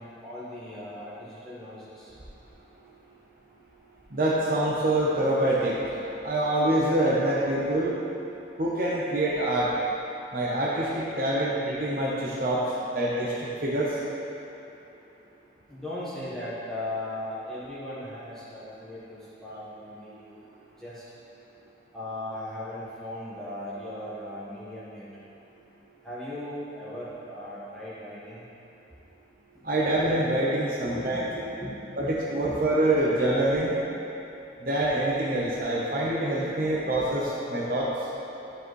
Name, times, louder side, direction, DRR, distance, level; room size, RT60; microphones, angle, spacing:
voice 1, 0.0-2.1 15.7-21.0 21.9-25.0 26.0-28.4 30.8-32.1 32.4-32.6 38.4-38.5, left 1 dB, 5° left, -11 dB, 1.3 m, -38 dB
voice 2, 4.1-7.9 8.6-9.7 10.3-12.6 12.9-14.0 29.6-31.2 32.0-33.7 34.6-37.9, right 1 dB, 50° right, -6 dB, 0.8 m, -25 dB
12.5 x 4.8 x 3.2 m, 2.9 s
head